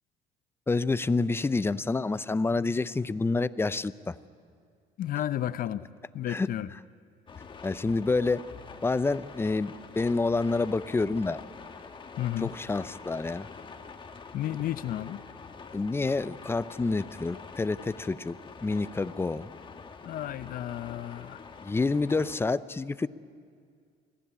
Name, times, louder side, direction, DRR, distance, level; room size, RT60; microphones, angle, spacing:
voice 1, 0.7-4.2 6.3-6.5 7.6-8.4 8.8-11.4 12.4-13.5 15.7-18.3 18.6-19.5 21.6-23.1, left 3 dB, 15° left, 0.5 m, -28 dB
voice 2, 5.0-5.9 6.1-6.7 12.2-12.5 14.3-15.2 20.0-21.4, left 12 dB, 60° left, 0.6 m, -32 dB
sound 1, 7.3-22.4, left 5 dB, 30° left, 1.4 m, -46 dB
22.5 x 15.5 x 9.9 m
cardioid pair, 110°, 17 cm